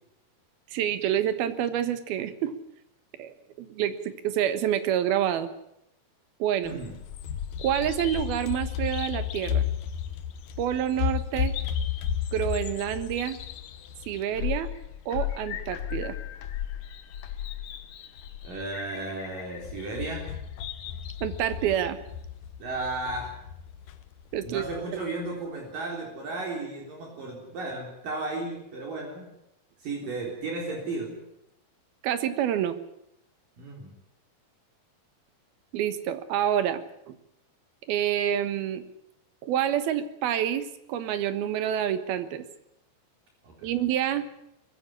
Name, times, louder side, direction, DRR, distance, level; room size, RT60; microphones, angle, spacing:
voice 1, 0.7-2.5 3.2-5.5 6.4-6.8 7.6-9.6 10.6-11.5 12.3-13.4 14.1-14.7 15.1-16.2 21.2-22.0 24.3-24.6 32.0-32.8 35.7-37.1 37.9-38.8 39.4-42.5 43.6-44.2, right 10 dB, 85° right, 11 dB, 3.3 m, -28 dB
voice 2, 6.6-6.9 18.4-20.3 22.6-23.4 24.4-29.3 29.8-31.2 33.6-33.9 43.4-43.7, right 2 dB, 65° right, 0 dB, 5.4 m, -34 dB
Bird vocalization bird call bird song, 6.7-24.8, left 9 dB, 65° left, 2.5 m, -34 dB
21.0 x 15.0 x 9.9 m, 0.81 s
omnidirectional pair, 4.2 m